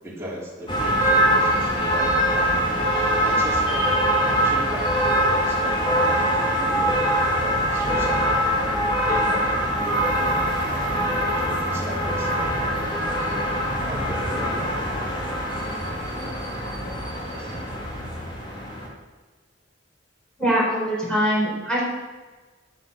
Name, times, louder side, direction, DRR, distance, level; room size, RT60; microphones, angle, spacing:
voice 1, 0.0-3.9 4.4-8.3 9.0-13.3 13.8-15.4 17.4-17.6 18.1-18.3, equal, 15° right, -6 dB, 3.7 m, -36 dB
sound 1, 0.7-18.9, equal, 25° left, 2.3 m, -23 dB
voice 2, 20.4-21.8, equal, 5° left, -6 dB, 4.5 m, -22 dB
9.2 x 9.2 x 6.7 m, 1.3 s
head